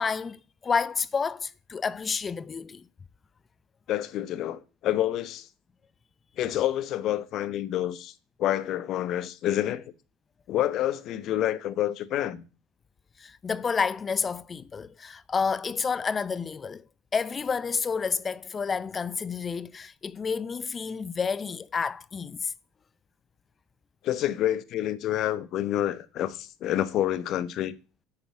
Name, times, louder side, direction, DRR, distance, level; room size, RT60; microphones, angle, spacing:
voice 1, 0.0-2.8 13.2-16.8 17.1-22.5, left 5 dB, 30° left, 0.5 m, -30 dB
voice 2, 3.9-5.5 6.4-8.1 8.4-9.8 10.5-12.5 24.0-27.7, left 12 dB, 50° left, 1.0 m, -28 dB
8.9 x 7.2 x 7.2 m
hypercardioid pair, 70°, 0 cm